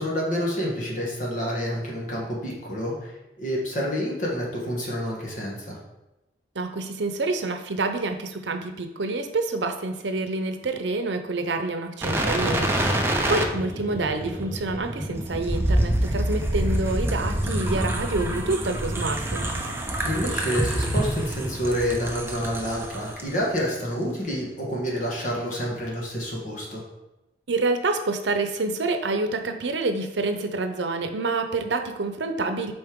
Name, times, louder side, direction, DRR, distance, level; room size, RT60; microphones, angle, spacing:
voice 1, 0.0-5.8 12.4-12.9 20.0-26.8, equal, 45° left, -3 dB, 1.7 m, -28 dB
voice 2, 6.5-19.5 27.5-32.7, right 3 dB, 85° right, 7 dB, 0.7 m, -27 dB
sound 1, 12.0-23.2 23.6-23.7, right 1 dB, 15° right, 0.6 m, -27 dB
7.8 x 4.4 x 3.7 m, 0.98 s
head